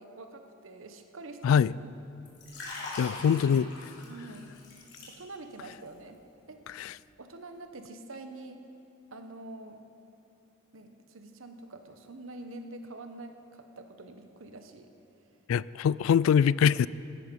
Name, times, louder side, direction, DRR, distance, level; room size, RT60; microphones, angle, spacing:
voice 1, 0.0-1.9 2.8-3.6 4.1-4.5 5.1-6.2 6.5-6.6 7.2-8.6 9.1-9.8 10.7-14.9, right 2 dB, 80° right, 1.1 m, -46 dB
Liquid, 2.2-5.6 5.9-6.1, left 2 dB, 55° left, 3.9 m, -42 dB
voice 2, 3.0-3.7 6.7-7.0 15.5-16.9, left 7 dB, 80° left, 0.3 m, -23 dB
16.5 x 13.0 x 5.3 m
head